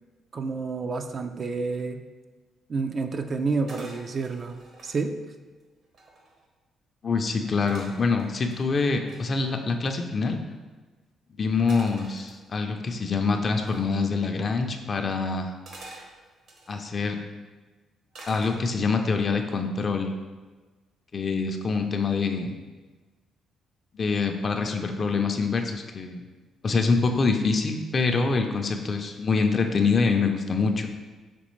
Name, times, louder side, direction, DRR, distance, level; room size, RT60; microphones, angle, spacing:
voice 1, 0.3-2.0 2.7-5.2, right 4 dB, 45° right, 6 dB, 0.3 m, -29 dB
sound 1, 3.7-5.0 5.6-5.7 5.8-6.5 7.7-9.2 11.7-12.8 13.7-13.9 15.7-16.9 18.1-19.0 19.4-19.8, right 2 dB, 65° right, 0.9 m, -47 dB
voice 2, 7.0-10.4 11.4-15.5 16.7-17.2 18.3-20.1 21.1-22.5 23.9-26.2 26.6-30.9, left 4 dB, 40° left, 5 dB, 0.5 m, -25 dB
5.1 x 3.2 x 3.1 m, 1.3 s
cardioid pair, 90°, 0 cm